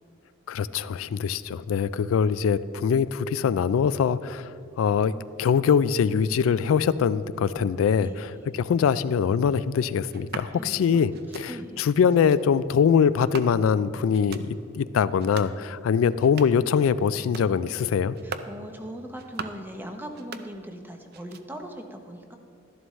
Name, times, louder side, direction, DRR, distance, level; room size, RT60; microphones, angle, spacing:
voice 1, 0.5-4.5 4.8-5.1 5.4-18.2, left 7 dB, 90° left, 15 dB, 0.3 m, -23 dB
voice 2, 8.0-8.4 10.5-11.0 11.5-11.9 18.2-22.4, equal, 10° right, 4 dB, 0.8 m, -40 dB
sound 1, 10.1-10.5 11.1-11.5 12.1-12.4 13.2-13.8 14.1-14.5 15.1-15.6 16.1-16.7 17.1-17.5 18.1-18.6 19.1-19.7 20.1-20.8 21.1-21.7, right 6 dB, 50° right, 0.5 m, -41 dB
12.5 x 11.0 x 3.1 m, 2.4 s
head